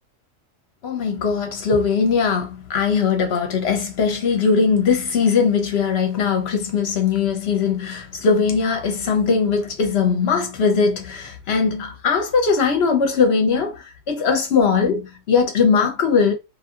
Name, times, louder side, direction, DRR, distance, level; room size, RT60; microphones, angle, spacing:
voice 1, 0.8-16.3, left 5 dB, 55° left, 0.9 m, -20 dB
2.7 x 2.6 x 2.4 m
omnidirectional pair, 1.4 m